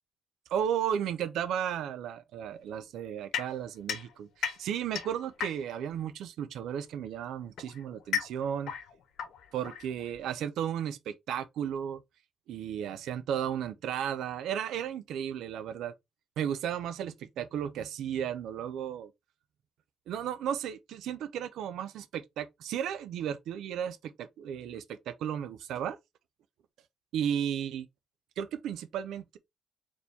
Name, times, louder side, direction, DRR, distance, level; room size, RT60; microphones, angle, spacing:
voice 1, 0.5-8.7 9.5-12.0 12.5-15.9 16.4-19.1 20.1-26.0 27.1-27.9 28.4-29.4, right 9 dB, 80° right, 0.5 m, -34 dB
sound 1, 3.3-5.9 7.0-10.3, left 8 dB, 75° left, 0.9 m, -37 dB
4.2 x 3.0 x 3.3 m
cardioid pair, 90°, 0 cm